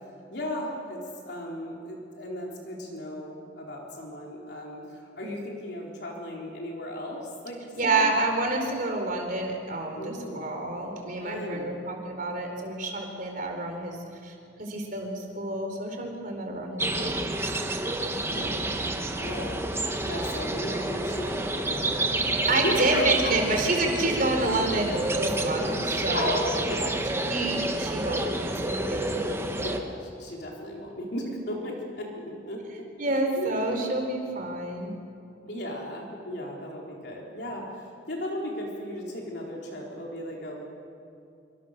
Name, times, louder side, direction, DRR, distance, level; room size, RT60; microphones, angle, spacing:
voice 1, 0.3-8.1 10.0-10.5 11.2-11.7 18.1-18.7 19.2-23.6 26.1-27.0 29.6-32.9 33.3-33.5 35.5-40.6, left 1 dB, 60° left, -2 dB, 4.1 m, -36 dB
voice 2, 7.8-14.0 14.2-17.2 22.5-26.5 27.3-29.2 33.0-34.9, right 2 dB, 45° right, 3 dB, 4.4 m, -28 dB
sound 1, 16.8-29.8, right 2 dB, 15° right, 1.5 m, -29 dB
26.5 x 25.0 x 6.8 m, 2.6 s
head